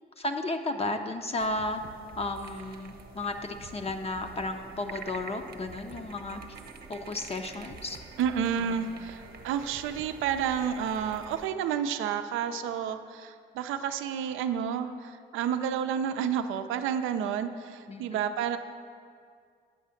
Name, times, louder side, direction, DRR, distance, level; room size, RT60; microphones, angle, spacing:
voice 1, 0.2-1.8 2.2-6.6 6.9-8.0 8.6-8.9 17.9-18.2, left 2 dB, 30° left, 5 dB, 0.5 m, -33 dB
sound 1, 1.4-11.5, right 4 dB, 50° right, 0.9 m, -47 dB
voice 2, 8.2-18.6, right 8 dB, 90° right, 9 dB, 0.5 m, -30 dB
8.4 x 5.9 x 5.6 m, 2.2 s
cardioid pair, 90°, 20 cm